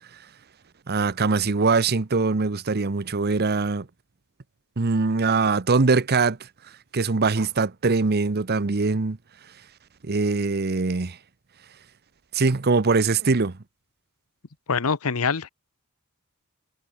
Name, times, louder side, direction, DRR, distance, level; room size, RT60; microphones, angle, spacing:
voice 1, 0.9-3.9 4.8-6.4 6.9-9.2 10.0-11.2 12.3-13.6, right 4 dB, 50° right, 0.8 m, -22 dB
voice 2, 14.7-15.5, left 5 dB, 75° left, 0.9 m, -24 dB
head